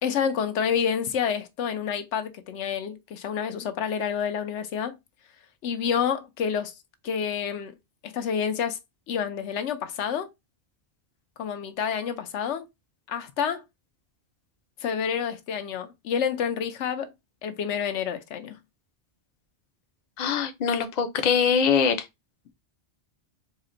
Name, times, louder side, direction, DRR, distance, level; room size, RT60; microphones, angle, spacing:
voice 1, 0.0-5.0 5.6-6.7 7.0-7.7 8.0-8.8 9.1-10.3 11.4-12.7 13.1-13.6 14.8-17.1 17.4-18.6, left 7 dB, 80° left, 1.0 m, -28 dB
voice 2, 20.2-22.1, left 6 dB, 50° left, 0.6 m, -23 dB
4.2 x 2.1 x 3.7 m
omnidirectional pair, 1.2 m